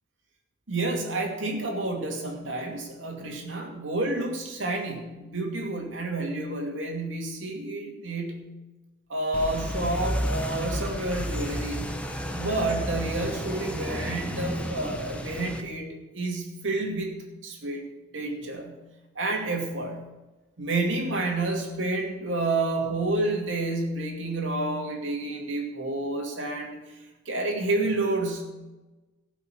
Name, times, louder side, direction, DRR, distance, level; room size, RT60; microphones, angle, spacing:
voice 1, 0.7-8.5 9.1-11.9 12.3-17.2 17.4-17.8 18.1-18.8 19.2-20.0 20.6-26.8 27.3-28.5, right 2 dB, 75° right, 2 dB, 2.4 m, -29 dB
sound 1, 9.3-15.6, equal, 5° left, 0.9 m, -32 dB
16.5 x 5.9 x 6.4 m, 1.1 s
head